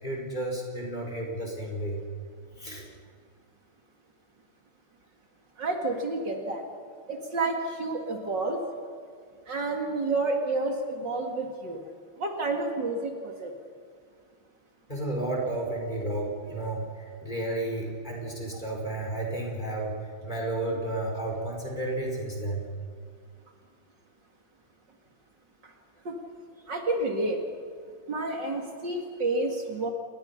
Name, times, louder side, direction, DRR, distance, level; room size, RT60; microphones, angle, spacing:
voice 1, 0.0-2.0 2.6-2.9 14.9-20.0 20.2-22.7, right 2 dB, 20° left, -1 dB, 5.2 m, -32 dB
voice 2, 5.6-6.6 7.1-8.6 9.5-11.8 12.2-13.5 26.1-26.2 26.7-27.4 28.1-29.9, right 2 dB, 55° right, 2 dB, 2.7 m, -29 dB
29.0 x 21.5 x 5.8 m, 2.2 s
omnidirectional pair, 2.3 m